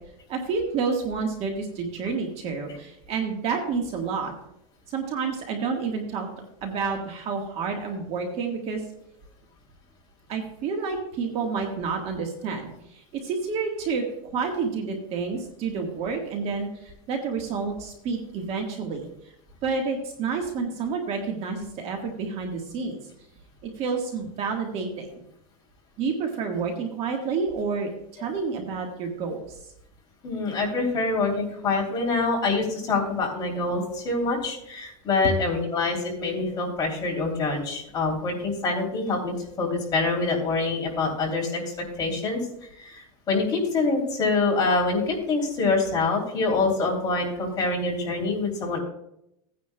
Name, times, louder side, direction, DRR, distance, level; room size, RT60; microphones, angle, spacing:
voice 1, 0.3-4.3 4.9-6.3 6.6-8.8 10.3-19.1 19.6-23.0 23.6-25.2 26.0-29.6, right 5 dB, 35° right, 3 dB, 1.5 m, -29 dB
voice 2, 30.2-42.4 42.8-48.8, left 3 dB, 25° left, -1 dB, 3.0 m, -25 dB
17.0 x 9.5 x 2.2 m, 0.79 s
supercardioid pair, 155°, 18 cm